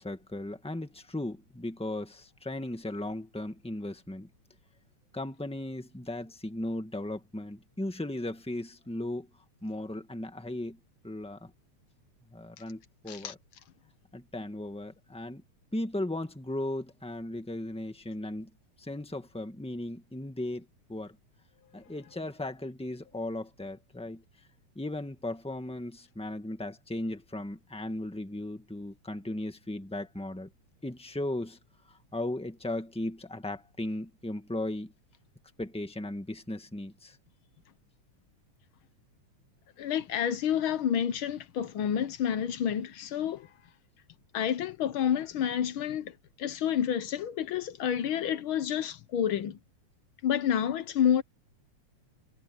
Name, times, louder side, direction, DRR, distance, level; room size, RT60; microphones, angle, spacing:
voice 1, 0.0-4.3 5.1-9.3 9.6-10.8 11.0-11.5 12.3-13.4 14.1-15.4 15.7-18.5 18.8-21.1 21.7-24.2 24.7-30.5 30.8-31.6 31.9-34.9 35.6-37.2, left 1 dB, 5° left, 0.8 m, -36 dB
voice 2, 39.8-43.5 44.3-49.6 50.2-51.2, left 9 dB, 65° left, 1.3 m, -29 dB
omnidirectional pair, 3.3 m